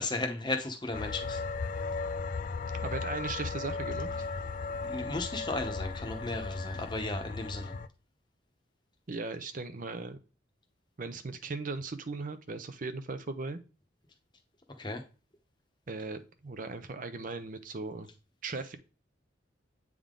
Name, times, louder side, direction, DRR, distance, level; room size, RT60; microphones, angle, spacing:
voice 1, 0.0-1.4 4.9-7.7 14.8-15.0, left 2 dB, 25° left, 4 dB, 0.9 m, -35 dB
sound 1, 0.9-7.9, left 4 dB, 40° left, 0.3 m, -36 dB
voice 2, 2.8-4.1 9.1-10.2 11.0-13.6 15.9-18.1 18.4-18.8, right 3 dB, 40° right, 10 dB, 0.5 m, -38 dB
8.5 x 3.6 x 3.7 m, 0.34 s
head